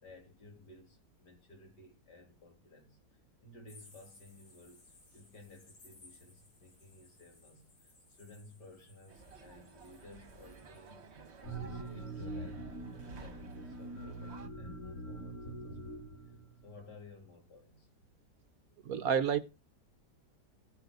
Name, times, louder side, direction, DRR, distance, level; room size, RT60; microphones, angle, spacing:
voice 1, 0.0-4.9 5.1-12.7 13.0-17.9, left 2 dB, 70° left, 4.1 m, -56 dB
sound 1, 3.7-11.1 11.4-11.5, left 2 dB, 85° left, 4.8 m, -62 dB
sound 2, 9.1-14.5, right 5 dB, 40° right, 1.4 m, -54 dB
sound 3, 11.4-16.8, right 2 dB, 45° left, 2.4 m, -43 dB
voice 2, 18.8-19.4, right 7 dB, 60° right, 1.1 m, -29 dB
16.0 x 7.9 x 4.8 m
omnidirectional pair, 1.9 m